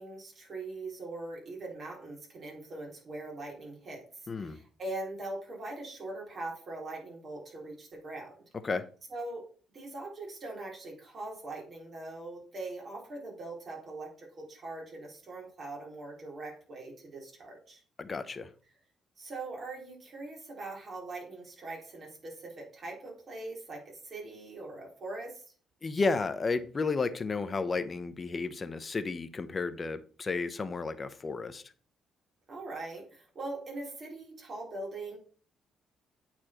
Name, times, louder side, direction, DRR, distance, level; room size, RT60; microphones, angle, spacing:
voice 1, 0.0-4.0 4.4-8.3 9.1-9.4 9.7-17.8 19.2-25.4 32.5-35.2, right 2 dB, 45° right, -2 dB, 3.9 m, -41 dB
voice 2, 4.3-4.6 8.6-8.8 18.0-18.5 25.8-31.6, left 4 dB, 35° left, 11 dB, 0.9 m, -32 dB
8.8 x 4.5 x 4.4 m, 0.43 s
cardioid pair, 90°, 0 cm